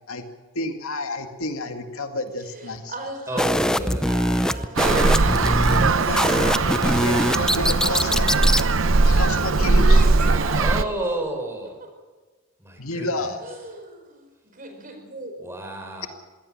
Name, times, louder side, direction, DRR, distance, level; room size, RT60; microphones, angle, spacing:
voice 1, 0.5-2.9 5.7-8.3 9.0-10.1 12.8-13.4, left 2 dB, 90° left, 2.3 m, -31 dB
voice 2, 2.4-6.1 9.8-11.1 11.8-11.9 13.4-15.3, right 1 dB, 40° right, 5.0 m, -36 dB
voice 3, 3.3-4.6 10.6-11.8 12.6-13.4 15.4-16.1, right 1 dB, 10° right, 4.6 m, -31 dB
sound 1, 3.4-8.7, equal, 5° left, 0.6 m, -23 dB
Traffic noise roadway noise, 4.8-10.8, right 3 dB, 70° right, 0.9 m, -20 dB
22.5 x 17.0 x 7.4 m
head